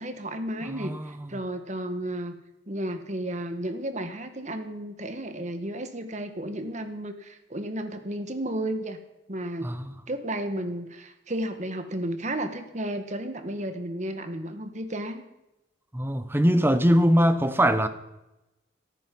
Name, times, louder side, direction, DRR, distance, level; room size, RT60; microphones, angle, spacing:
voice 1, 0.0-2.3 2.7-9.0 9.3-9.7 10.1-15.2, right 1 dB, 40° right, 1.7 m, -33 dB
voice 2, 0.7-1.3 9.6-9.8 15.9-17.9, equal, 10° right, 1.0 m, -22 dB
17.0 x 14.0 x 5.5 m
head